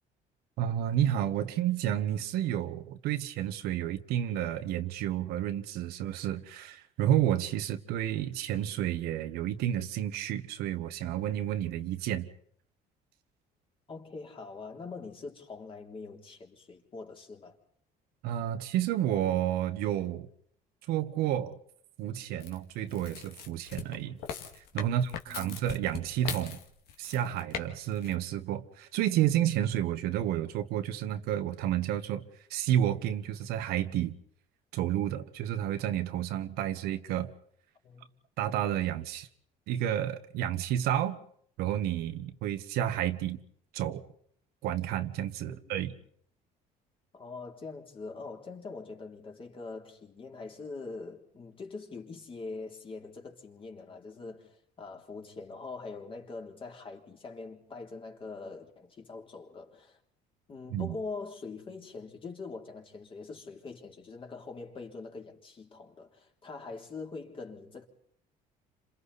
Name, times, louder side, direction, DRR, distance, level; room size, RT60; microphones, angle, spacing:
voice 1, 0.6-12.3 18.2-20.3 20.9-21.5 22.0-24.2 24.6-26.6 27.0-32.2 32.5-34.1 34.7-37.3 38.4-39.3 39.7-41.2 41.6-43.4 43.7-44.0 44.6-45.9 60.7-60.9, right 11 dB, 80° right, 1.3 m, -30 dB
voice 2, 13.9-17.6 24.9-25.5 37.8-38.1 45.5-45.9 47.1-60.0 60.5-67.9, left 4 dB, 35° left, 3.4 m, -43 dB
sound 1, 22.4-27.6 27.9-28.1, left 8 dB, 80° left, 2.2 m, -40 dB
29.5 x 27.0 x 4.2 m
cardioid pair, 115°, 16 cm